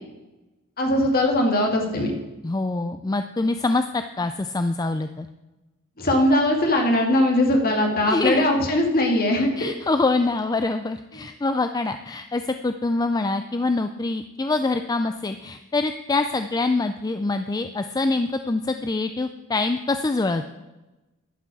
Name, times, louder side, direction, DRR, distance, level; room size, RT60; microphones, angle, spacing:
voice 1, 0.8-2.1 6.0-9.7, left 1 dB, 45° left, 1 dB, 2.1 m, -20 dB
voice 2, 2.4-5.3 8.1-8.4 9.6-20.4, left 3 dB, 15° left, 8 dB, 0.4 m, -25 dB
11.5 x 6.0 x 8.3 m, 1.1 s
head